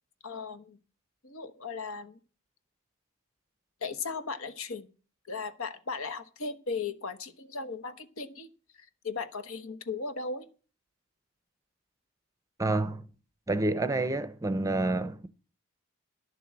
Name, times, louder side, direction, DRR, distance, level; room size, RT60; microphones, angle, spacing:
voice 1, 0.2-0.8 1.2-2.2 3.8-4.9 5.3-8.5 9.0-10.5, left 4 dB, 70° left, 1.2 m, -37 dB
voice 2, 12.6-13.1 13.5-15.3, right 2 dB, 15° right, 0.6 m, -28 dB
11.5 x 6.9 x 7.3 m
head